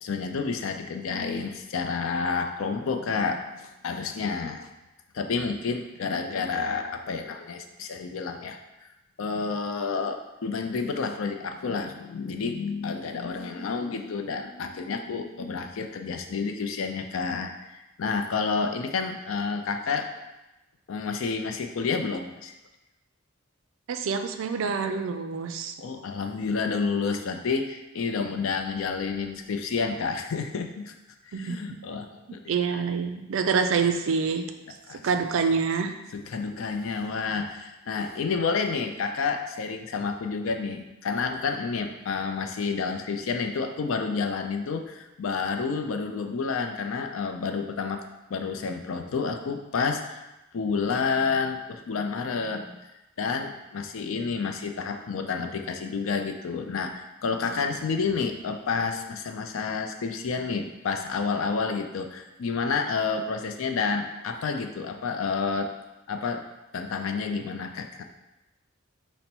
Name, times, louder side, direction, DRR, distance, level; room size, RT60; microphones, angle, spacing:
voice 1, 0.0-4.7 5.1-8.9 9.2-20.1 20.9-22.5 25.8-30.9 31.3-32.8 34.9-35.0 36.1-48.0 48.3-50.2 50.5-52.8 53.2-65.7 66.1-68.0, left 5 dB, 70° left, 6 dB, 0.4 m, -30 dB
voice 2, 23.9-25.7 31.3-31.6 32.5-34.5 34.9-35.9, right 5 dB, 65° right, 7 dB, 0.4 m, -26 dB
5.2 x 2.1 x 4.4 m, 0.98 s
head